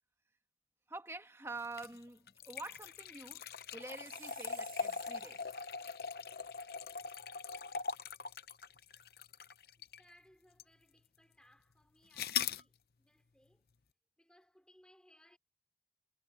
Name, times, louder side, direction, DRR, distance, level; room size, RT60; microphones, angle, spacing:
voice 1, 0.9-3.4 3.7-5.4, right 3 dB, 15° right, 1.5 m, -47 dB
sound 1, 1.6-10.1 10.6-10.7 12.1-12.6, left 6 dB, 60° left, 0.8 m, -41 dB
Chime, 3.8-5.8, right 12 dB, 50° right, 1.5 m, -57 dB
voice 2, 10.0-13.7 14.2-15.4, left 1 dB, 5° left, 4.9 m, -66 dB
head